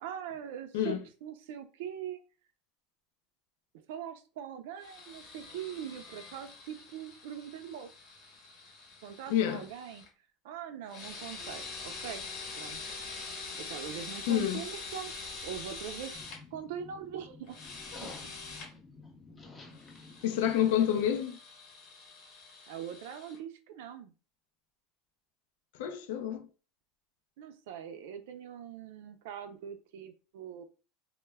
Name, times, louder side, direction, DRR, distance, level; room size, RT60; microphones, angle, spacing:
voice 1, 0.0-2.2 3.7-7.9 9.0-10.1 10.4-12.8 13.6-16.2 16.5-17.6 18.0-18.3 22.7-24.1 27.4-30.6, right 9 dB, 80° right, 0.3 m, -42 dB
sound 1, 4.8-10.1 10.9-16.4 17.5-18.7 19.7-23.4, left 4 dB, 40° left, 0.8 m, -45 dB
voice 2, 9.3-9.6 14.3-14.6 20.2-21.4 25.8-26.5, left 10 dB, 80° left, 0.4 m, -28 dB
sound 2, 16.1-21.2, left 3 dB, 10° left, 0.4 m, -51 dB
2.2 x 2.0 x 3.2 m
cardioid pair, 175°, 0 cm